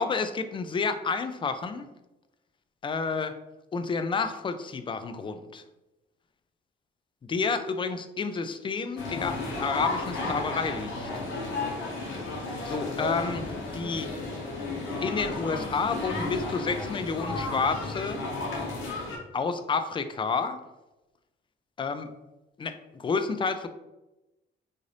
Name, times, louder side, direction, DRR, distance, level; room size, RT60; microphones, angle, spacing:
voice 1, 0.0-1.9 2.8-3.3 3.7-5.6 7.3-11.1 12.7-13.4 13.7-14.1 15.0-18.2 19.3-20.6 21.8-22.1 22.6-23.7, left 4 dB, 25° left, 10 dB, 0.3 m, -30 dB
sound 1, 9.0-19.2, left 3 dB, 80° left, 0.9 m, -33 dB
sound 2, 10.3-15.8, right 3 dB, 45° right, 0.7 m, -48 dB
3.9 x 2.5 x 3.2 m, 0.99 s
cardioid pair, 90°, 20 cm